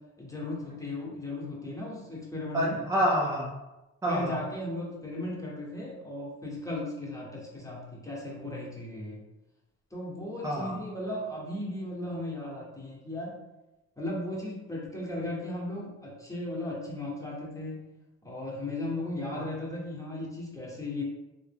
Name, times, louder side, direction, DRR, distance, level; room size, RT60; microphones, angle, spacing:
voice 1, 0.2-2.8 4.1-9.2 9.9-13.3 14.0-17.8 18.2-21.0, left 1 dB, 10° left, -4 dB, 1.1 m, -36 dB
voice 2, 2.5-3.5 4.0-4.4 10.4-10.7 19.3-19.4, equal, 10° right, -4 dB, 0.5 m, -27 dB
3.3 x 2.1 x 3.4 m, 1.0 s
cardioid pair, 90°, 30 cm